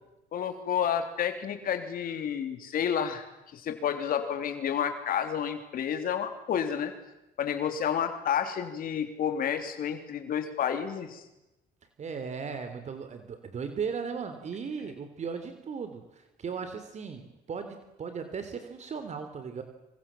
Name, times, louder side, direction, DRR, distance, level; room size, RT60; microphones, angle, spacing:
voice 1, 0.3-3.3 3.5-6.9 7.4-11.2, left 8 dB, 60° left, 7 dB, 3.5 m, -30 dB
voice 2, 12.0-19.6, right 6 dB, 45° right, 8 dB, 3.3 m, -37 dB
27.0 x 26.5 x 7.6 m, 0.94 s
cardioid pair, 110°, 17 cm